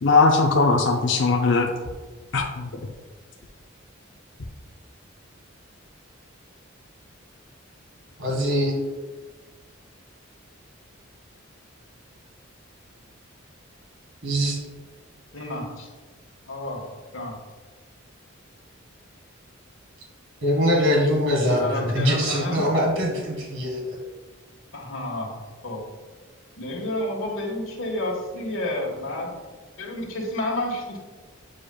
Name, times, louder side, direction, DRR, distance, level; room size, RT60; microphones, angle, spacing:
voice 1, 0.0-1.7 2.3-2.7, left 3 dB, 60° left, 1 dB, 0.6 m, -19 dB
voice 2, 8.2-8.7 14.2-14.6 20.4-24.0, equal, 70° right, -1 dB, 1.7 m, -23 dB
voice 3, 15.3-15.9 16.4-16.8 17.1-17.3 21.5-22.9 24.7-25.4 25.6-25.8 26.6-29.3 29.8-31.0, left 1 dB, 85° left, -1 dB, 1.5 m, -30 dB
8.8 x 4.9 x 2.3 m, 1.3 s
head